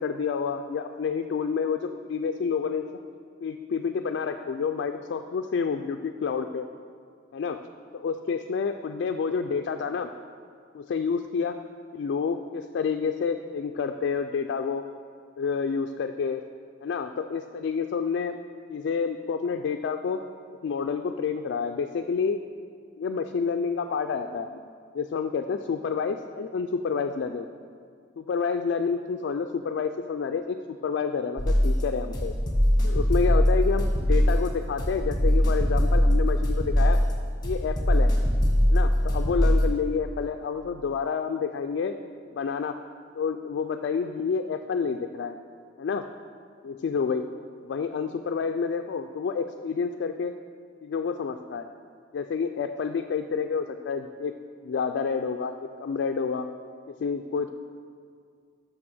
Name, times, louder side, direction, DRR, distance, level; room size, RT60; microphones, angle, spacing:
voice 1, 0.0-2.9 3.4-6.7 7.3-7.6 7.9-10.1 10.7-11.6 11.9-14.8 15.4-16.4 16.8-18.4 18.7-20.2 20.6-22.4 23.0-24.5 24.9-27.5 28.2-32.3 32.8-37.0 37.4-38.1 38.7-42.0 42.3-42.7 43.2-45.3 45.8-46.1 46.6-47.3 47.6-50.3 50.8-51.7 52.1-54.3 54.6-55.5 55.8-56.5 56.9-57.5, left 5 dB, 65° left, 6 dB, 0.3 m, -29 dB
sound 1, 31.4-39.7, equal, 25° left, 1.1 m, -22 dB
6.4 x 6.1 x 6.1 m, 2.2 s
head